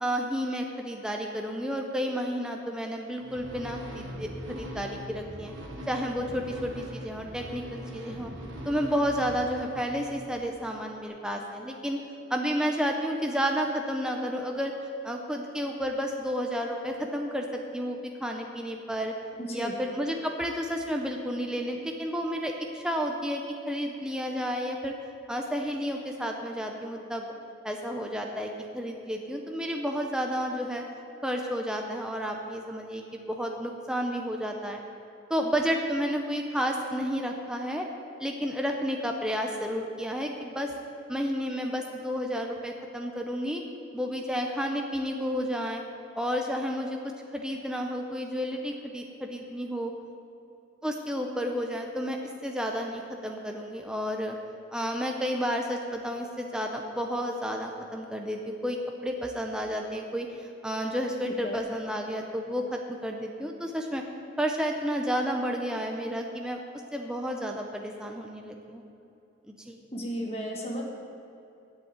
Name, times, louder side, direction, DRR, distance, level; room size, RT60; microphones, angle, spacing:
voice 1, 0.0-5.5 5.9-8.3 8.7-12.0 12.3-14.7 15.0-19.1 19.5-24.9 25.3-27.2 27.6-30.8 31.2-34.8 35.3-37.8 38.2-40.7 41.1-43.6 43.9-45.8 46.2-47.0 47.3-49.9 50.8-54.4 54.7-60.3 60.6-64.0 64.4-66.6 66.9-68.8 69.5-69.8, equal, 5° right, 1 dB, 0.6 m, -31 dB
sound 1, 3.2-10.6, equal, 85° right, 1.4 m, -41 dB
voice 2, 19.4-19.7 61.2-61.6 69.9-70.8, equal, 30° left, -2 dB, 1.5 m, -34 dB
8.1 x 7.6 x 8.2 m, 2.7 s
head